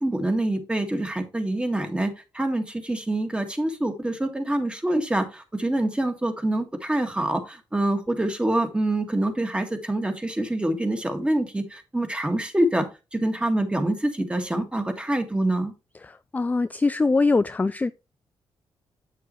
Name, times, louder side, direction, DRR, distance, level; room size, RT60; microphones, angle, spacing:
voice 1, 0.0-15.7, right 1 dB, 10° right, 1.7 m, -26 dB
voice 2, 16.3-17.9, left 3 dB, 15° left, 0.3 m, -22 dB
7.7 x 6.8 x 3.0 m
cardioid pair, 75°, 9 cm